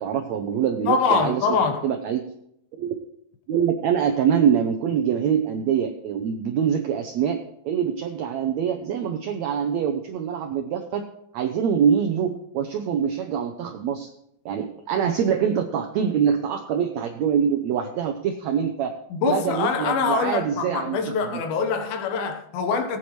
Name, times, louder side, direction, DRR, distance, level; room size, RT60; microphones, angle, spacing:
voice 1, 0.0-1.6 1.8-2.2 2.7-2.9 3.5-7.4 7.6-11.1 11.3-14.1 14.4-18.9 19.2-21.4, right 8 dB, 85° right, 1.6 m, -24 dB
voice 2, 0.9-1.9 19.1-23.0, left 5 dB, 85° left, 3.0 m, -24 dB
18.5 x 8.9 x 3.1 m
omnidirectional pair, 4.1 m